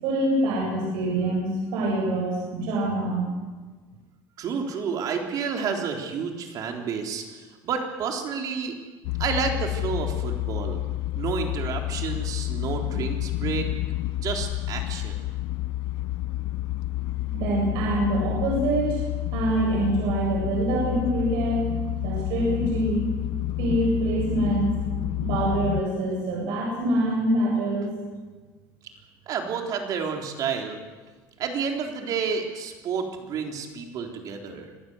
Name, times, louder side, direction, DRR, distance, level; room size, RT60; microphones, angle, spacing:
voice 1, 0.0-3.3 17.3-19.0 19.3-21.7 22.0-23.1 23.6-24.8 25.2-27.9, right 1 dB, 70° right, -2 dB, 7.8 m, -25 dB
voice 2, 4.4-8.8 9.2-10.8 11.2-13.7 14.1-15.3 29.3-30.8 31.4-34.7, right 6 dB, 50° right, 2 dB, 3.8 m, -30 dB
sound 1, 9.0-25.8, left 15 dB, 70° left, 0.8 m, -29 dB
25.5 x 15.0 x 8.0 m, 1.3 s
cardioid pair, 135°, 8 cm